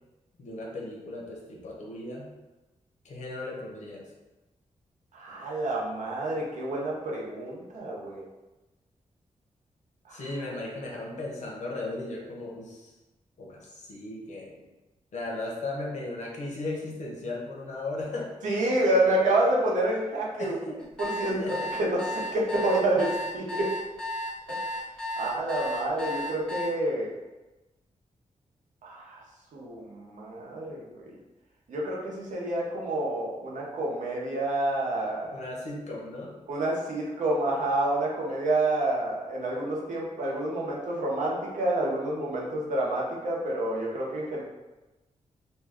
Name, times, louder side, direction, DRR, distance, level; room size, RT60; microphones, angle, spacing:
voice 1, 0.4-2.3 3.0-4.1 10.1-12.9 13.4-14.6 15.1-18.3 20.4-20.8 21.2-21.7 35.3-36.4, left 2 dB, 70° left, -1 dB, 0.7 m, -36 dB
voice 2, 5.1-8.2 10.1-10.2 18.4-20.6 21.0-21.4 21.8-22.0 22.3-23.7 24.5-24.6 25.2-27.1 28.8-29.2 29.5-31.1 31.7-35.4 36.5-44.4, right 1 dB, 80° right, -3 dB, 0.7 m, -28 dB
sound 1, 20.8-26.7, left 1 dB, 5° left, 0.4 m, -33 dB
2.6 x 2.2 x 3.4 m, 1.1 s
wide cardioid pair, 170°, 13 cm